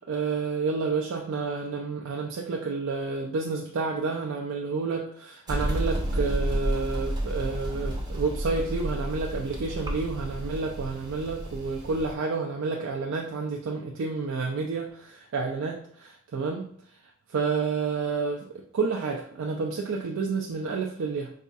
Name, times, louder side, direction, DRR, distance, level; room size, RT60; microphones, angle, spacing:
voice 1, 0.1-16.7 17.3-21.3, right 4 dB, 70° right, 0 dB, 0.4 m, -30 dB
sound 1, 5.5-12.1, right 1 dB, 20° right, 0.6 m, -31 dB
4.1 x 2.3 x 2.6 m, 0.63 s
head